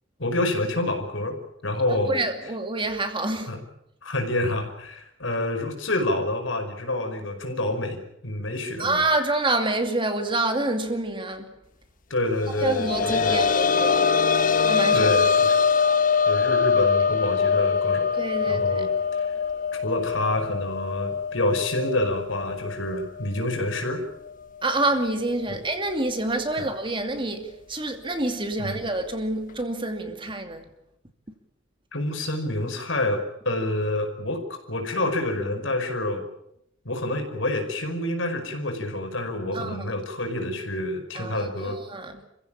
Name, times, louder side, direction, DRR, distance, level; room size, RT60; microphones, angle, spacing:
voice 1, 0.2-1.4 1.6-2.1 3.5-3.6 4.0-9.0 12.1-13.4 14.9-15.6 16.3-18.1 18.5-18.9 19.2-19.3 19.7-24.0 25.5-25.6 26.6-26.7 28.6-28.8 31.9-36.2 36.9-41.8, left 1 dB, 80° left, 5.2 m, -27 dB
voice 2, 1.9-3.5 8.8-11.5 12.6-14.1 14.6-15.1 18.2-18.9 24.6-30.7 39.5-39.8 41.1-42.2, right 2 dB, 25° right, 2.5 m, -27 dB
sound 1, 12.5-23.9 24.3-24.4 25.9-26.0, left 6 dB, 45° left, 1.0 m, -23 dB
28.5 x 15.5 x 8.8 m
head